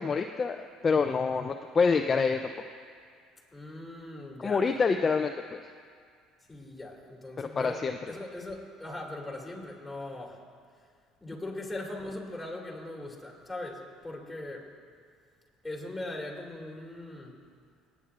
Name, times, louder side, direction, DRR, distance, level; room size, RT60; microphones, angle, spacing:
voice 1, 0.0-2.5 4.4-5.6 7.4-8.0, left 5 dB, 30° left, 6 dB, 0.4 m, -27 dB
voice 2, 3.5-4.7 6.5-10.4 11.2-14.7 15.6-17.4, left 2 dB, 10° left, -3 dB, 2.6 m, -40 dB
23.5 x 9.5 x 2.5 m, 2.1 s
supercardioid pair, 100°, 0 cm